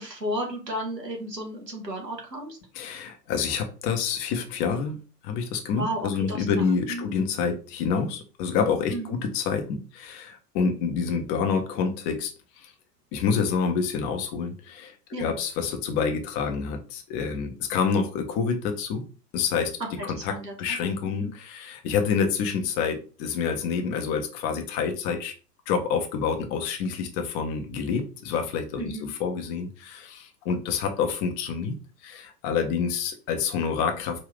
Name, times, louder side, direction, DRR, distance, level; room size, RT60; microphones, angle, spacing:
voice 1, 0.0-2.6 5.8-7.1 8.9-9.2 15.1-15.3 20.0-20.8 21.0-21.3 28.8-29.1, right 1 dB, 90° right, 1 dB, 1.4 m, -34 dB
voice 2, 2.8-5.0 5.2-12.3 12.6-12.7 13.1-19.0 19.3-19.7 20.0-20.3 20.6-25.3 25.7-28.9 29.2-31.8 32.0-34.3, left 6 dB, 20° left, 5 dB, 0.5 m, -27 dB
5.0 x 2.7 x 3.2 m, 0.35 s
figure-of-eight pair, 100°, 48 cm